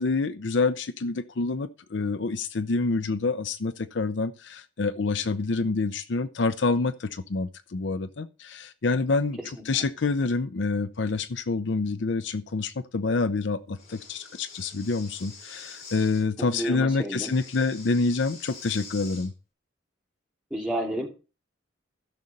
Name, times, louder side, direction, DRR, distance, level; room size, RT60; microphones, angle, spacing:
voice 1, 0.0-9.4 9.7-19.3, left 3 dB, 65° left, 0.6 m, -27 dB
Breathing, 13.8-16.2 17.2-19.3, left 4 dB, 45° left, 3.4 m, -45 dB
voice 2, 16.4-17.3 20.5-21.1, right 1 dB, 5° right, 2.7 m, -30 dB
14.5 x 6.4 x 4.1 m
head